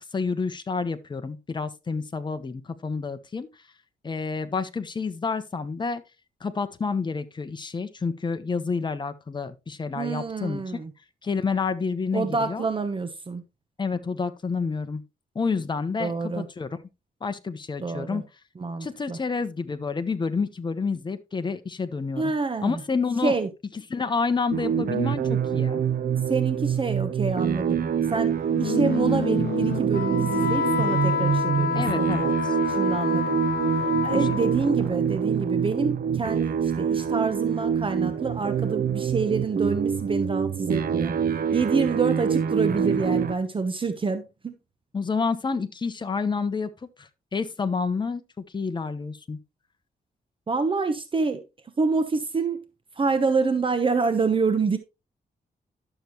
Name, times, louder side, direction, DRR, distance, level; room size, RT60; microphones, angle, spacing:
voice 1, 0.1-3.5 4.0-6.0 6.4-10.6 11.2-12.7 13.8-15.0 15.3-16.7 17.2-18.2 18.8-22.3 22.6-23.4 23.9-25.8 31.7-32.5 34.1-34.2 44.9-46.7 47.0-49.4, left 4 dB, 30° left, 1.1 m, -29 dB
voice 2, 9.9-10.9 12.1-13.4 16.0-16.5 17.8-18.2 18.6-19.2 22.2-22.8 23.2-23.5 26.3-27.8 28.1-32.3 32.7-33.4 34.0-41.1 41.5-44.5 50.5-51.4 51.8-52.6 53.0-54.8, right 4 dB, 35° right, 1.1 m, -27 dB
sound 1, 24.5-43.3, right 7 dB, 65° right, 0.8 m, -25 dB
Wind instrument woodwind instrument, 28.5-34.7, left 7 dB, 75° left, 0.9 m, -28 dB
11.5 x 7.0 x 3.1 m
cardioid pair, 115°, 16 cm